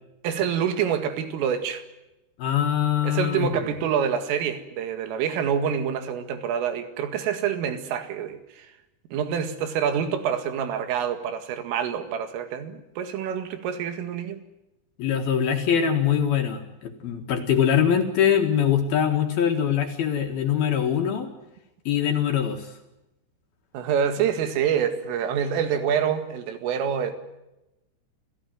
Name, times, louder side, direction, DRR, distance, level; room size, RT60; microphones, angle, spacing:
voice 1, 0.2-1.8 3.0-8.7 9.1-14.4 23.7-27.1, right 8 dB, 85° right, 4.5 m, -26 dB
voice 2, 2.4-3.5 15.0-21.3 21.9-22.7, left 8 dB, 60° left, 3.1 m, -23 dB
27.5 x 15.5 x 9.3 m
omnidirectional pair, 5.7 m